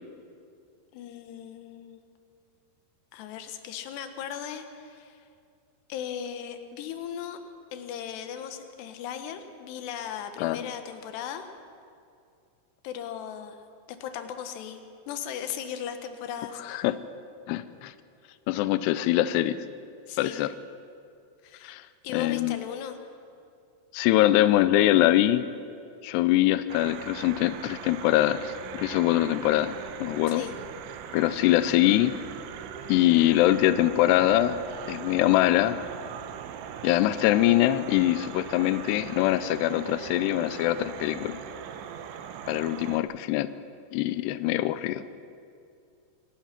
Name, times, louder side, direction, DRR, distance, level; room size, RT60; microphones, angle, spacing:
voice 1, 0.9-2.0 3.1-5.2 5.9-7.4 7.7-11.5 12.8-13.6 14.0-16.6 20.1-20.4 21.4-21.8 22.0-23.0 30.3-30.6, left 8 dB, 70° left, 7 dB, 3.0 m, -37 dB
voice 2, 10.4-10.7 16.6-17.0 17.5-17.9 18.5-19.6 20.2-20.5 21.6-21.8 22.1-22.6 23.9-25.4 26.0-28.5 28.8-30.4 31.1-32.1 32.9-34.6 34.9-35.8 36.8-41.4 42.5-43.5 43.9-45.0, left 14 dB, 90° left, 13 dB, 2.4 m, -23 dB
sound 1, 26.7-43.0, right 8 dB, 80° right, 3.3 m, -40 dB
25.0 x 18.0 x 5.9 m, 2.4 s
omnidirectional pair, 5.5 m